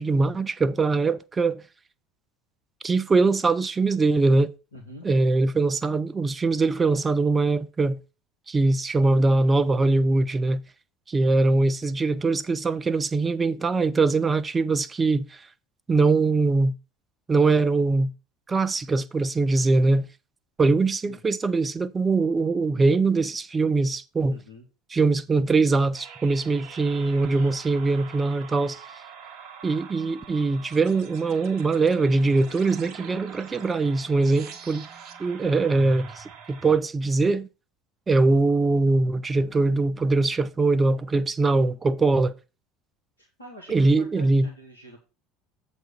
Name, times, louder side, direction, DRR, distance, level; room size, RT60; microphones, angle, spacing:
voice 1, 0.0-1.6 2.8-4.5 5.0-8.0 8.5-10.6 11.1-15.4 15.9-16.7 17.3-18.1 18.5-20.1 20.6-24.4 24.9-28.8 29.6-34.9 35.2-37.5 38.1-42.3 43.7-44.5, right 3 dB, 20° right, 0.7 m, -22 dB
voice 2, 4.7-5.1 21.0-21.2 24.3-24.7 43.2-45.0, equal, 85° left, 1.6 m, -45 dB
sound 1, 25.9-36.8, right 6 dB, 50° right, 1.2 m, -44 dB
7.6 x 4.2 x 6.9 m
figure-of-eight pair, 70°, 0 cm